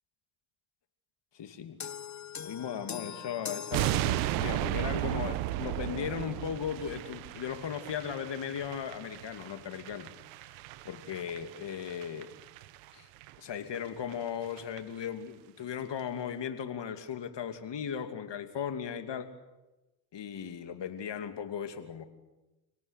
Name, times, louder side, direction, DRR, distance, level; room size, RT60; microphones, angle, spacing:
voice 1, 1.3-1.8 2.4-10.1 10.5-10.6 10.8-12.3 12.9-13.1 13.4-19.3 20.1-22.1, left 8 dB, 55° left, 8 dB, 2.8 m, -37 dB
sound 1, 1.8-4.7, left 8 dB, 35° left, 1.2 m, -42 dB
sound 2, 3.7-12.9 13.2-13.3 13.7-13.8 14.1-14.2 14.4-14.8 15.0-15.1, right 15 dB, 90° right, 1.0 m, -35 dB
27.5 x 18.0 x 8.3 m, 1.0 s
hypercardioid pair, 50°, 49 cm